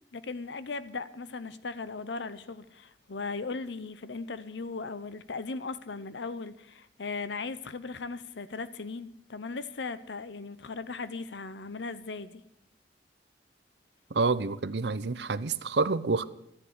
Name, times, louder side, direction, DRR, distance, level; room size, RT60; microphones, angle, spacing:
voice 1, 0.1-12.4, left 4 dB, 90° left, 13 dB, 0.8 m, -38 dB
voice 2, 14.1-16.2, right 3 dB, 75° right, 15 dB, 0.7 m, -28 dB
14.0 x 9.7 x 8.1 m, 0.75 s
head